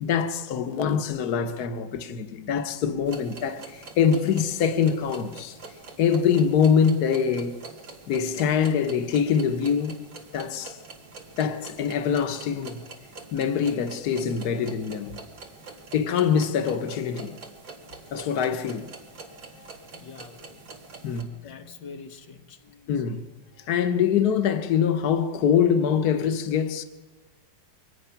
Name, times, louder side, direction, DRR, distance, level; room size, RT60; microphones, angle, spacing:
voice 1, 0.0-5.6 6.0-7.6 8.1-10.0 10.3-10.8 11.4-12.8 13.3-15.2 15.9-17.4 18.1-18.9 21.0-21.3 22.9-23.2 23.7-26.8, left 7 dB, 60° left, 1.6 m, -24 dB
sound 1, 3.1-21.2, right 3 dB, 85° right, 3.0 m, -45 dB
voice 2, 19.1-20.7 21.3-23.1 23.5-23.9, left 5 dB, 85° left, 2.1 m, -47 dB
24.5 x 19.5 x 5.9 m
omnidirectional pair, 1.9 m